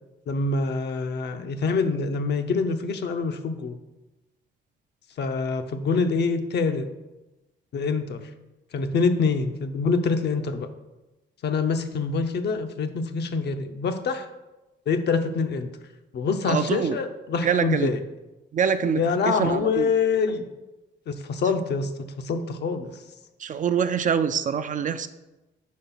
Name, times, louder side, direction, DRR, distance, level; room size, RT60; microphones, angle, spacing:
voice 1, 0.3-3.8 5.2-6.9 7.7-8.2 8.7-10.7 11.4-14.3 14.9-15.7 16.1-18.0 19.0-20.5 21.1-23.0, left 4 dB, 60° left, 8 dB, 0.6 m, -25 dB
voice 2, 16.4-17.0 17.4-17.9 18.5-19.9 23.4-25.1, right 7 dB, 40° right, 11 dB, 0.4 m, -25 dB
4.9 x 4.3 x 5.5 m, 1.0 s
cardioid pair, 90°, 20 cm